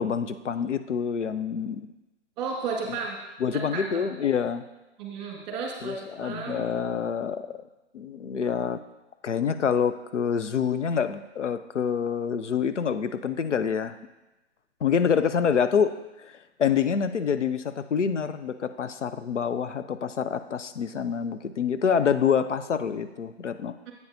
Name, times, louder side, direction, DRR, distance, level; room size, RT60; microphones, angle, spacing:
voice 1, 0.0-1.9 2.9-3.0 3.4-4.6 5.8-7.6 7.9-8.8 9.2-14.0 14.8-15.9 16.2-23.7, left 7 dB, 80° left, 11 dB, 0.6 m, -27 dB
voice 2, 2.4-3.2 3.5-4.0 5.0-6.7 23.9-24.0, right 5 dB, 20° right, 0 dB, 1.7 m, -33 dB
10.5 x 8.4 x 2.7 m, 1.0 s
figure-of-eight pair, 140°, 35 cm